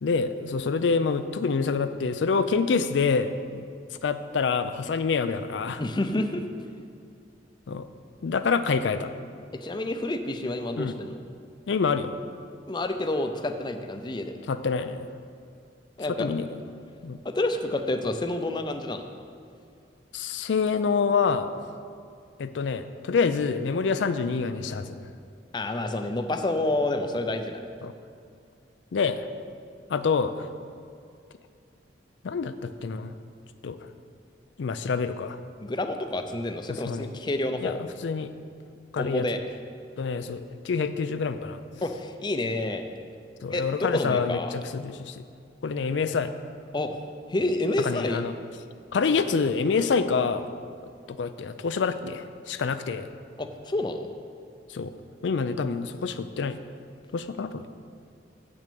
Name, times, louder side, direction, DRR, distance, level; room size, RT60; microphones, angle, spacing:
voice 1, 0.0-3.7 4.0-5.8 7.7-7.9 8.2-9.1 10.8-10.9 11.7-12.2 14.5-15.1 16.1-16.6 17.0-17.2 20.1-21.5 22.4-25.0 27.8-27.9 28.9-29.3 29.9-30.5 32.2-33.1 33.6-33.8 34.6-35.4 36.7-37.1 37.6-38.3 38.9-39.3 40.0-41.6 43.4-45.2 45.6-46.3 47.8-48.3 48.9-50.5 51.1-53.1 54.7-54.9 55.2-56.6 57.1-57.7, left 5 dB, 85° left, 11 dB, 0.4 m, -27 dB
voice 2, 5.8-6.4 9.5-11.2 12.7-14.4 16.0-16.3 17.2-19.1 25.5-27.7 35.6-37.8 39.0-39.4 41.8-42.8 43.5-44.5 46.7-47.0 47.3-48.2 49.1-49.2 49.8-49.9 53.4-54.1, left 2 dB, 25° left, 7 dB, 0.5 m, -29 dB
7.7 x 6.1 x 6.9 m, 2.4 s
head